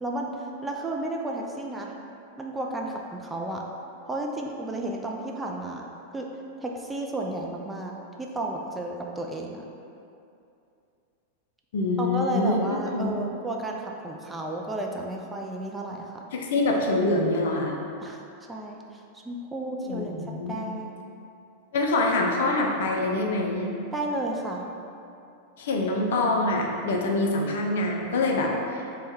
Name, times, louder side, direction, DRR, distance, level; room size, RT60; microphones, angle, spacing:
voice 1, 0.0-1.9 2.4-3.6 4.1-5.8 6.1-6.3 6.6-9.7 12.0-16.2 18.0-18.2 18.5-20.1 20.5-21.0 23.9-24.7, right 1 dB, 10° right, 0 dB, 0.3 m, -32 dB
voice 2, 11.7-13.2 16.3-17.7 19.9-20.6 21.7-23.7 25.6-28.9, left 2 dB, 55° left, 0 dB, 0.4 m, -25 dB
4.0 x 2.2 x 3.4 m, 2.6 s
figure-of-eight pair, 90°, 0 cm